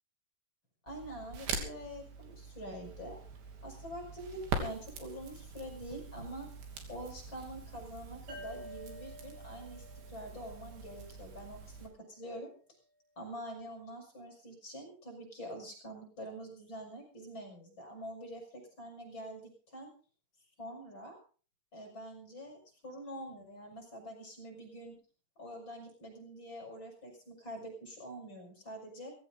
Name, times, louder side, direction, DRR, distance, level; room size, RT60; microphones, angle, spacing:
voice 1, 0.9-3.2 3.6-6.5 6.9-12.5 13.2-19.9 20.6-21.2 21.7-25.0 25.4-29.1, equal, 25° left, 2 dB, 6.7 m, -46 dB
Crackle, 0.9-11.9, right 4 dB, 65° right, 4.9 m, -43 dB
sound 1, 8.3-11.7, left 1 dB, 50° right, 4.7 m, -51 dB
19.0 x 16.5 x 3.9 m, 0.39 s
omnidirectional pair, 5.6 m